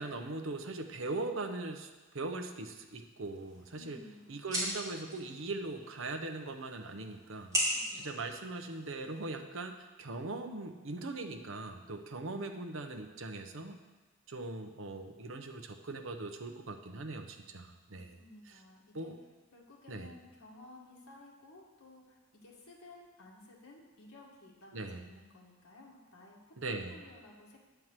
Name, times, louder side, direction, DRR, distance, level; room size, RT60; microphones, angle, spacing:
voice 1, 0.0-4.0 4.3-7.6 7.9-13.8 14.3-18.2 18.9-19.2 19.9-20.1 24.7-25.1 26.6-26.9, right 2 dB, 65° right, 5 dB, 0.8 m, -40 dB
sound 1, 3.2-9.2, equal, 15° right, 2.6 m, -39 dB
voice 2, 3.7-4.3 7.7-8.3 17.9-19.1 19.5-26.6 26.9-27.6, left 2 dB, 85° left, -3 dB, 1.9 m, -55 dB
9.6 x 4.6 x 7.4 m, 1.2 s
head